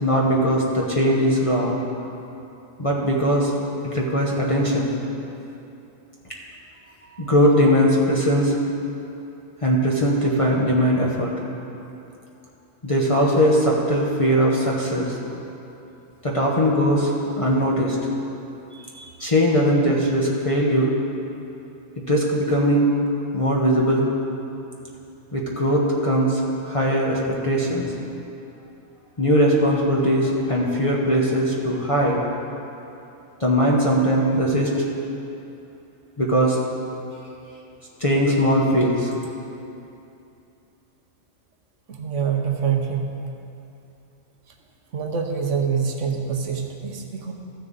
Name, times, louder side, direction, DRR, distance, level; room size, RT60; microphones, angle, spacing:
voice 1, 0.0-1.8 2.8-3.5 3.8-5.0 7.2-8.6 9.6-11.3 12.8-15.2 16.2-17.1 17.4-18.0 18.9-20.9 22.1-22.9 23.3-24.1 25.3-27.9 29.2-32.2 33.4-34.7 36.2-36.6 38.0-39.2, equal, 30° left, -3 dB, 1.0 m, -20 dB
voice 2, 41.9-43.1 44.9-47.3, right 6 dB, 90° right, 3 dB, 1.2 m, -25 dB
14.0 x 6.5 x 4.0 m, 2.8 s
omnidirectional pair, 1.2 m